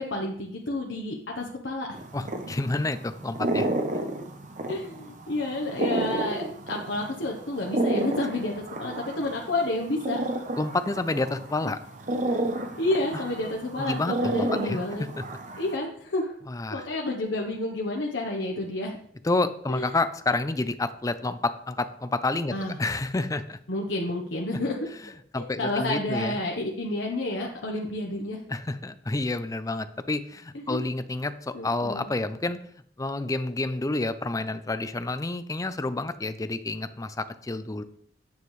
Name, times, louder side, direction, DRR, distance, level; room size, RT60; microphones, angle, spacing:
voice 1, 0.0-2.0 4.7-10.3 11.6-11.7 12.8-15.1 15.6-16.3 16.7-19.0 19.7-19.9 22.5-22.8 23.7-24.8 25.4-28.4 30.5-30.8 31.5-32.1, left 2 dB, 75° left, 0 dB, 1.0 m, -30 dB
sound 1, 1.9-15.8, right 2 dB, 45° right, 0.8 m, -31 dB
voice 2, 2.1-3.7 10.6-11.8 13.8-15.2 16.5-16.9 19.2-23.6 25.3-26.4 28.5-32.6 33.0-37.8, left 2 dB, 20° left, 11 dB, 0.5 m, -29 dB
9.3 x 7.2 x 3.2 m, 0.64 s
head